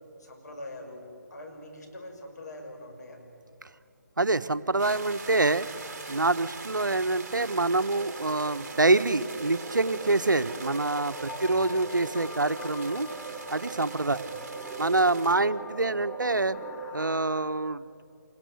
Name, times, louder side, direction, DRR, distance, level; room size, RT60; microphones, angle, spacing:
voice 1, 0.2-3.2 11.3-11.6 14.1-14.3, left 1 dB, 60° left, 2 dB, 6.0 m, -44 dB
voice 2, 4.2-5.7 6.1-13.1 13.5-14.3 14.8-16.6 16.9-17.8, right 2 dB, 85° right, 13 dB, 0.9 m, -26 dB
sound 1, 4.8-15.4, right 4 dB, 50° right, 2.3 m, -42 dB
sound 2, 7.8-17.2, right 5 dB, 15° right, 1.1 m, -42 dB
sound 3, 9.1-17.5, left 6 dB, 30° left, 2.9 m, -47 dB
26.5 x 20.5 x 8.0 m, 2.5 s
figure-of-eight pair, 150°, 10 cm